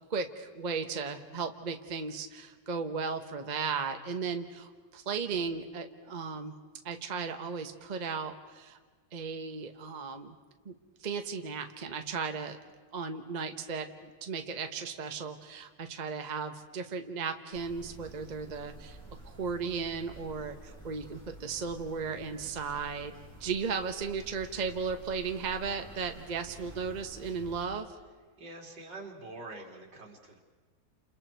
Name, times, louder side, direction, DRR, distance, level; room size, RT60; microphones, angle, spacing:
voice 1, 0.1-6.5 6.8-8.8 9.1-10.4 10.6-10.7 11.0-12.6 12.9-19.0 19.2-23.1 23.4-27.9, right 5 dB, 30° right, 6 dB, 1.0 m, -35 dB
sound 1, 17.5-27.7, right 2 dB, ahead, 6.1 m, -50 dB
voice 2, 28.4-30.4, right 2 dB, 70° right, 1 dB, 3.5 m, -45 dB
29.5 x 28.5 x 4.6 m, 1.4 s
omnidirectional pair, 2.0 m